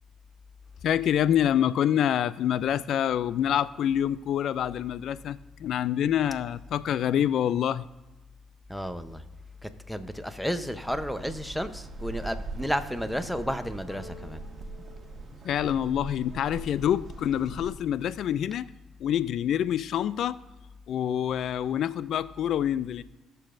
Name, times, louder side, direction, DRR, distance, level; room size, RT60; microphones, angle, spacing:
voice 1, 0.8-7.9 15.4-18.7 19.0-20.4 20.9-23.0, left 10 dB, 70° left, 0.3 m, -26 dB
voice 2, 8.7-9.2 9.6-14.4, equal, ahead, 0.8 m, -32 dB
sound 1, 10.8-17.7, right 3 dB, 45° right, 1.8 m, -41 dB
sound 2, 13.9-16.5, left 3 dB, 35° left, 3.4 m, -52 dB
18.0 x 6.8 x 2.6 m
supercardioid pair, 75°, 0 cm